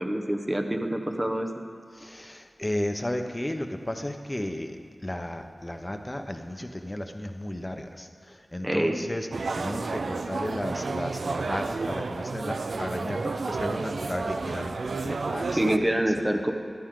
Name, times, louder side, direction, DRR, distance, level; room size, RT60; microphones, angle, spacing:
voice 1, 0.0-1.5 8.6-9.0 15.4-16.5, right 1 dB, 20° right, 5 dB, 1.2 m, -26 dB
voice 2, 1.9-9.3 9.5-16.3, left 1 dB, 25° left, 6 dB, 1.1 m, -34 dB
sound 1, 9.3-15.8, right 3 dB, 90° right, 0.4 m, -31 dB
15.0 x 11.5 x 3.9 m, 2.2 s
cardioid pair, 40°, 0 cm